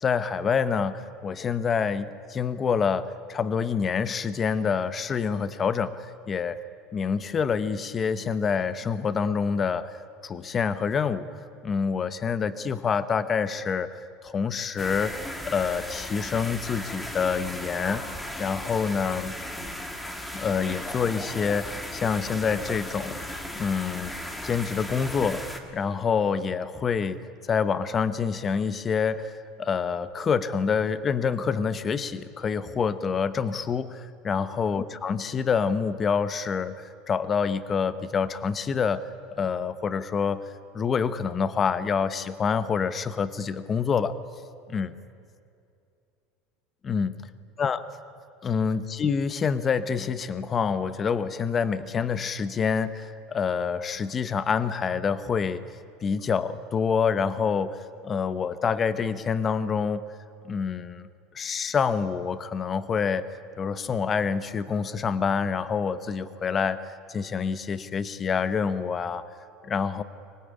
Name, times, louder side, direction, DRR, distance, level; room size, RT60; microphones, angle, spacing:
voice 1, 0.0-6.6 6.9-10.0 10.2-11.3 11.6-13.9 14.2-18.0 18.4-19.4 20.3-23.2 23.5-24.1 24.4-27.2 27.5-39.0 39.4-40.4 40.7-44.1 44.7-44.9 46.8-47.1 47.6-47.8 48.4-55.6 56.0-57.8 58.0-60.0 60.4-61.1 61.3-63.2 63.6-66.8 67.1-69.2 69.6-70.0, left 6 dB, 20° left, 14 dB, 0.8 m, -27 dB
sound 1, 14.8-25.6, left 1 dB, 5° left, 1.6 m, -36 dB
24.0 x 19.5 x 10.0 m, 2.5 s
cardioid pair, 165°, 0 cm